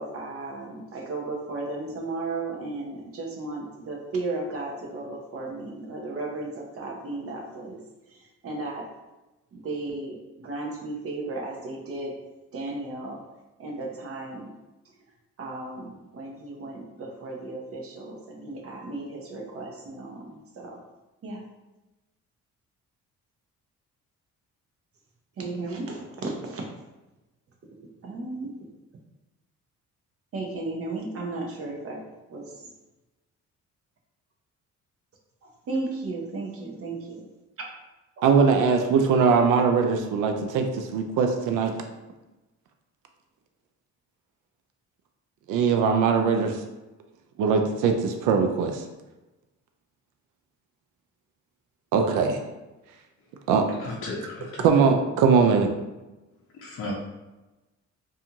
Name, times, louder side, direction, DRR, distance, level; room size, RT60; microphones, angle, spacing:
voice 1, 0.0-7.8 8.1-8.9 9.5-12.2 12.5-13.2 13.6-14.5 15.4-20.8 21.2-21.4 25.4-26.7 28.0-28.5 30.3-32.7 35.7-37.3 37.6-37.7, right 2 dB, 50° right, 1 dB, 0.7 m, -35 dB
voice 2, 38.2-41.7 45.5-46.6 47.4-48.8 51.9-52.4 53.5-53.6 54.6-55.7, right 5 dB, 85° right, 5 dB, 0.5 m, -21 dB
voice 3, 53.8-54.7 56.5-56.9, left 2 dB, 45° left, -4 dB, 0.5 m, -34 dB
2.5 x 2.4 x 2.8 m, 1.1 s
cardioid pair, 90°, 30 cm